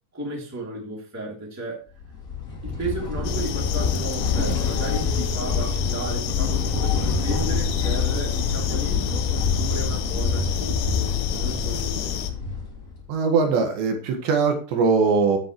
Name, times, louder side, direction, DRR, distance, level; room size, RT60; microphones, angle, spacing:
voice 1, 0.1-1.9 2.6-12.2, right 2 dB, 5° right, -2 dB, 2.3 m, -34 dB
sound 1, 2.0-13.0, left 5 dB, 25° left, 1.9 m, -26 dB
sound 2, 3.2-12.3, left 10 dB, 75° left, 3.1 m, -32 dB
voice 2, 13.1-15.4, right 4 dB, 70° right, 4 dB, 3.7 m, -21 dB
15.5 x 7.3 x 3.1 m, 0.37 s
omnidirectional pair, 5.5 m